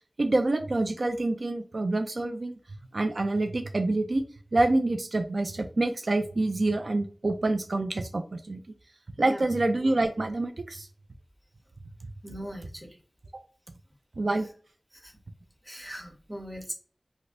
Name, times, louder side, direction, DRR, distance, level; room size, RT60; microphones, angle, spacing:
voice 1, 0.2-2.5 2.9-4.2 4.5-8.6 9.2-10.9 14.2-14.5, right 2 dB, 75° right, 6 dB, 0.3 m, -27 dB
voice 2, 12.2-13.0 14.9-15.1 15.6-16.7, equal, 10° right, -2 dB, 1.2 m, -40 dB
3.2 x 2.6 x 2.5 m, 0.41 s
wide cardioid pair, 55°, 0 cm